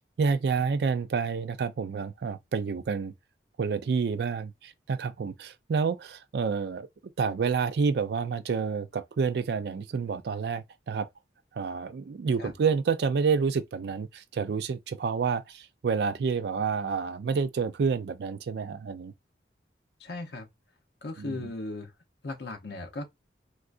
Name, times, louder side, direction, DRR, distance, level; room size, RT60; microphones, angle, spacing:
voice 1, 0.2-3.1 3.6-6.9 7.2-11.1 11.5-19.1 21.2-21.5, right 5 dB, 65° right, 0.3 m, -29 dB
voice 2, 20.0-20.5 21.0-21.9 22.2-23.0, left 2 dB, 65° left, 0.6 m, -37 dB
3.6 x 2.4 x 2.4 m
head